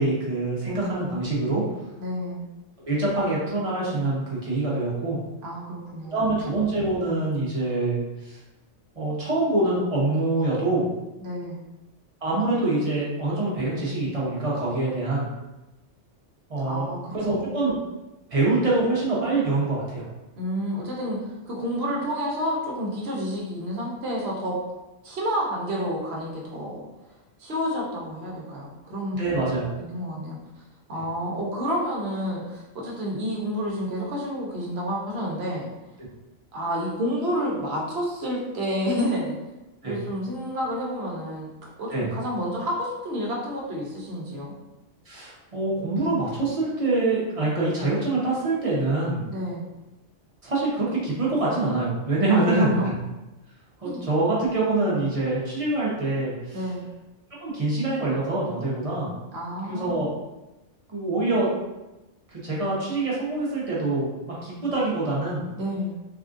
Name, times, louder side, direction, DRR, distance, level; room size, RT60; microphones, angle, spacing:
voice 1, 0.0-1.6 2.8-5.2 6.1-8.4 8.9-10.9 12.2-15.3 16.5-17.8 18.3-20.1 29.2-29.7 39.8-39.9 41.9-42.1 45.1-49.2 50.4-52.7 53.8-56.7 57.4-59.1 59.7-60.1 60.9-61.5 62.3-65.4, right 2 dB, 35° right, -6 dB, 0.8 m, -25 dB
voice 2, 2.0-2.4 5.4-6.2 11.2-11.6 16.6-17.0 17.3-17.4 20.4-21.2 21.5-24.6 25.0-26.8 27.4-29.4 29.8-30.4 30.9-35.7 36.5-39.3 39.8-41.5 41.8-44.5 49.3-49.7 52.3-52.9 53.8-54.0 56.5-56.9 59.3-60.1 65.6-65.9, equal, 60° right, -3 dB, 0.9 m, -29 dB
3.4 x 2.4 x 2.5 m, 1.0 s
omnidirectional pair, 1.3 m